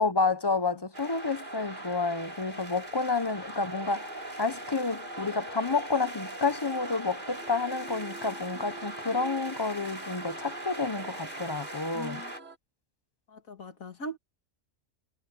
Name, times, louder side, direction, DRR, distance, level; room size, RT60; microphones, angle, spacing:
voice 1, 0.0-4.1 4.4-12.2, left 4 dB, 20° left, 0.7 m, -30 dB
sound 1, 0.9-12.4, right 1 dB, 35° right, 5.9 m, -40 dB
sound 2, 3.8-12.6, right 1 dB, 60° right, 4.9 m, -49 dB
voice 2, 11.9-12.3 13.3-14.2, equal, 85° left, 2.7 m, -40 dB
omnidirectional pair, 1.4 m